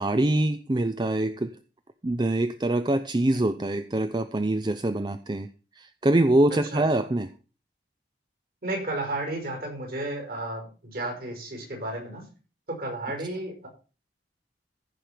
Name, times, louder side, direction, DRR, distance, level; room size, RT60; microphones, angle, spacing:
voice 1, 0.0-1.5 2.0-5.5 5.8-7.3, right 1 dB, 25° right, 10 dB, 0.5 m, -24 dB
voice 2, 8.6-12.3 12.7-13.7, right 2 dB, 55° right, 1 dB, 5.3 m, -33 dB
15.0 x 5.1 x 5.9 m, 0.36 s
head